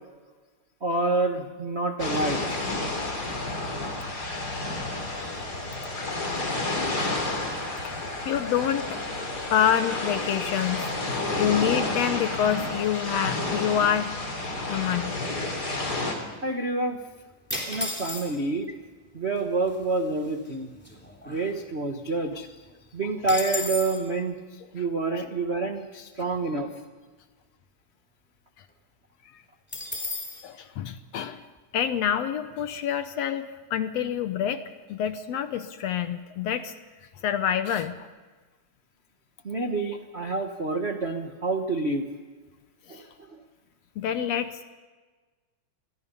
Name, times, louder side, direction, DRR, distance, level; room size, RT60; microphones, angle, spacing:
voice 1, 0.8-2.6 16.4-17.0 17.7-18.7 19.1-20.7 21.2-22.5 22.9-26.7 39.4-42.1 42.9-43.4, right 2 dB, 60° right, 3 dB, 0.6 m, -28 dB
sound 1, 2.0-16.1, left 2 dB, 30° left, 3.9 m, -30 dB
voice 2, 7.8-9.0 9.5-10.9 11.4-14.2 14.7-15.2 30.4-31.4 31.7-34.6 34.9-36.7 37.2-38.0 44.0-44.6, left 9 dB, 70° left, 10 dB, 1.8 m, -27 dB
sound 2, 17.5-18.6 19.4-19.5 19.7-20.0 20.4-21.9 22.3-22.4 22.6-24.0 29.7-30.4, left 2 dB, 5° left, 3.2 m, -34 dB
28.5 x 22.0 x 5.5 m, 1.4 s
omnidirectional pair, 3.6 m